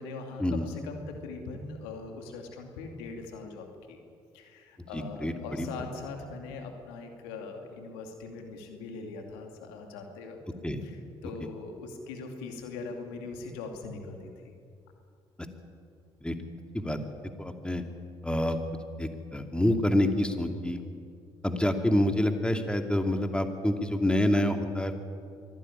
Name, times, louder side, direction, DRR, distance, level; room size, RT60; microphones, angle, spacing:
voice 1, 0.0-4.0 4.3-10.4 10.8-14.5, left 4 dB, 80° left, 4 dB, 2.6 m, -41 dB
voice 2, 4.9-5.7 10.6-10.8 16.2-16.3 16.7-17.0 17.4-17.8 18.2-18.6 19.0-20.8 21.4-24.9, left 1 dB, 5° left, 6 dB, 2.7 m, -27 dB
24.0 x 16.0 x 10.0 m, 2.3 s
hypercardioid pair, 50°, 13 cm